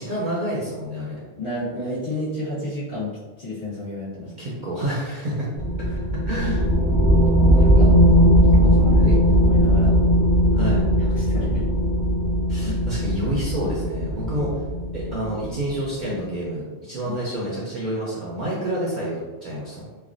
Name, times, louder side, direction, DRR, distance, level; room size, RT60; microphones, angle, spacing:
voice 1, 0.0-1.2 4.2-5.5 6.2-6.7 10.5-10.9 12.5-14.5 14.9-19.9, right 1 dB, 50° right, -6 dB, 0.6 m, -28 dB
voice 2, 1.3-4.3 5.8-6.0 7.3-8.0 8.5-10.0 11.0-11.7 12.6-12.8 14.2-14.5 17.0-17.1, left 1 dB, 45° left, -10 dB, 1.6 m, -32 dB
sound 1, 5.6-15.6, equal, 30° left, 0.9 m, -18 dB
3.2 x 2.2 x 2.5 m, 1.3 s
omnidirectional pair, 1.2 m